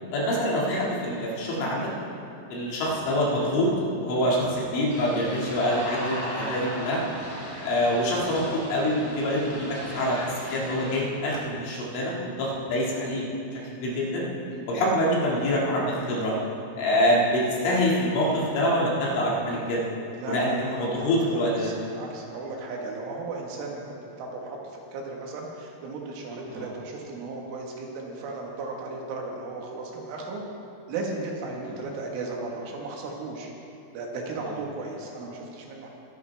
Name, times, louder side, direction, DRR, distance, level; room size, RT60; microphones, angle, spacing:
voice 1, 0.1-1.9 2.5-7.0 7.6-13.3 13.6-14.2 14.7-16.3 16.8-19.8 20.3-21.7 26.5-26.7, equal, 80° left, -5 dB, 4.9 m, -25 dB
sound 1, 4.9-11.0, equal, 15° left, 1.6 m, -37 dB
voice 2, 20.2-30.4 30.9-33.5 33.9-35.9, right 3 dB, 85° right, -1 dB, 4.2 m, -35 dB
21.5 x 10.5 x 3.5 m, 2.6 s
omnidirectional pair, 5.4 m